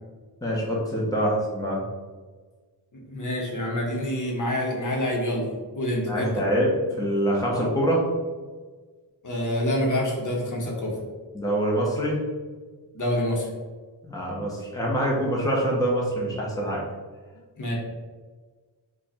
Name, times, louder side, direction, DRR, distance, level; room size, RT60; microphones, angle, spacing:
voice 1, 0.4-1.8 6.1-6.7 7.0-8.0 11.3-12.2 14.0-16.8, right 1 dB, 10° left, -4 dB, 0.8 m, -25 dB
voice 2, 2.9-5.5 5.7-6.4 7.5-7.7 9.2-10.9 12.9-13.5 17.6-17.7, left 1 dB, 45° left, -1 dB, 1.0 m, -27 dB
5.0 x 2.4 x 4.2 m, 1.4 s
wide cardioid pair, 140°, 42 cm